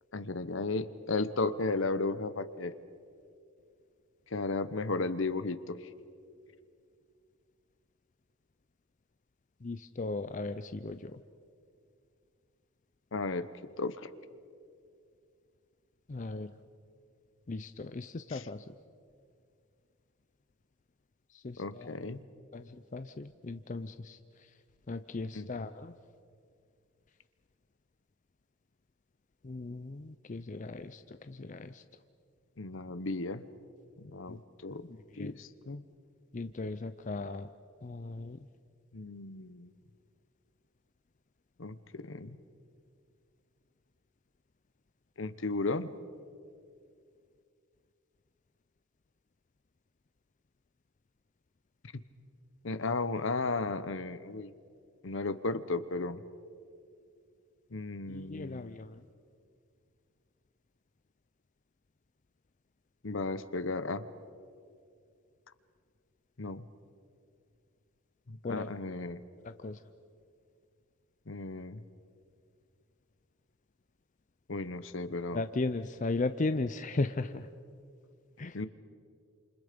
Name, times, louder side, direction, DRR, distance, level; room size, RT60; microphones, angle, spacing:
voice 1, 0.1-2.7 4.3-5.9 13.1-13.5 13.8-14.1 18.3-18.5 21.6-22.2 25.3-25.5 32.6-33.5 34.0-34.8 35.2-35.8 38.9-39.7 41.6-42.4 45.2-45.9 51.9-52.0 52.6-54.5 55.0-56.2 57.7-58.8 63.0-64.1 66.4-66.6 68.3-69.2 71.3-71.8 74.5-75.4 78.5-78.7, left 3 dB, 65° left, 14 dB, 0.9 m, -34 dB
voice 2, 9.6-11.2 16.1-16.5 17.5-18.6 21.3-21.9 22.5-24.2 24.9-25.9 29.4-31.8 34.3-34.4 34.7-35.3 36.3-37.5 37.8-38.4 58.1-59.0 68.4-68.7 69.4-69.8 75.3-77.5 78.4-78.7, left 3 dB, 35° left, 10 dB, 0.5 m, -37 dB
29.0 x 28.0 x 5.2 m, 2.3 s
head